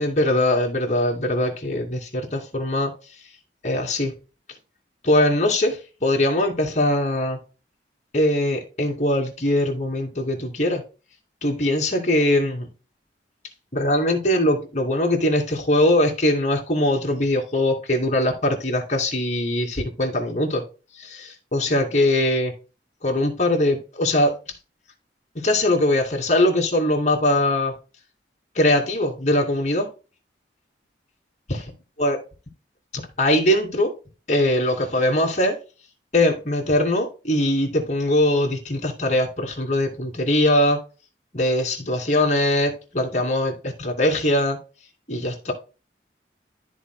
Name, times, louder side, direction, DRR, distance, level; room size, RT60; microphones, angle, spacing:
voice 1, 0.0-2.9 3.6-4.1 5.0-7.4 8.1-10.8 11.4-12.7 13.7-20.6 21.0-22.5 23.0-24.3 25.4-27.7 28.5-29.9 31.5-31.6 32.0-32.2 32.9-33.9 34.3-35.6 36.1-40.8 41.3-44.6 45.1-45.5, left 1 dB, 40° left, 0 dB, 2.4 m, -21 dB
13.5 x 4.6 x 2.2 m, 0.32 s
head